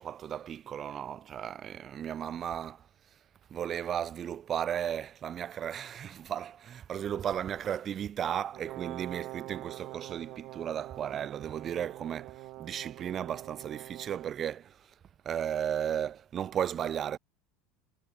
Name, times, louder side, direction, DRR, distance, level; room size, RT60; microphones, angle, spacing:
voice 1, 0.0-3.2 3.5-14.9 15.2-17.2, right 9 dB, 35° right, 3.6 m, -35 dB
Brass instrument, 8.5-14.4, right 19 dB, 55° right, 1.9 m, -45 dB
supercardioid pair, 120°, 0 cm